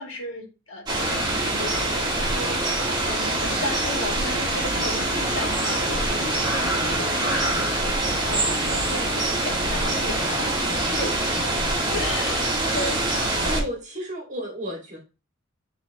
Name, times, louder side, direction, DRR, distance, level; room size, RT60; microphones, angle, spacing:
voice 1, 0.0-11.7 11.9-13.0, left 2 dB, 70° left, -1 dB, 2.1 m, -35 dB
sound 1, 0.9-13.6, right 2 dB, 20° right, 1.7 m, -24 dB
voice 2, 12.6-13.1 13.4-15.0, right 1 dB, 35° right, -1 dB, 1.9 m, -33 dB
8.9 x 4.0 x 2.9 m, 0.30 s
head